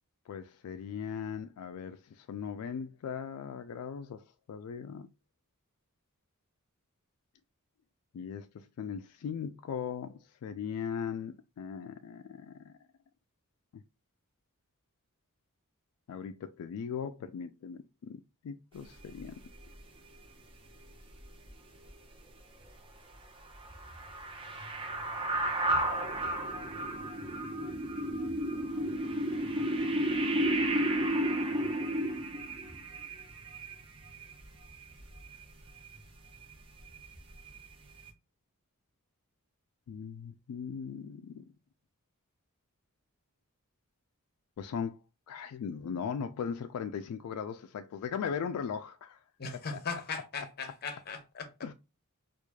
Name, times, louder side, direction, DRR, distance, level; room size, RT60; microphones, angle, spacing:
voice 1, 0.3-5.1 8.1-12.8 16.1-19.4 39.9-41.5 44.6-45.0 45.3-49.2 49.5-49.8 50.4-50.5 51.6-51.7, left 7 dB, 85° left, 0.3 m, -39 dB
sound 1, 19.2-19.3 19.6-19.8 21.2-21.5 21.9-22.0 23.5-35.4 35.8-36.0 36.4-36.5 36.9-37.7 38.0-38.1, right 1 dB, 25° right, 0.6 m, -33 dB
voice 2, 49.4-51.5, left 4 dB, 45° left, 0.7 m, -38 dB
4.6 x 2.4 x 2.3 m
head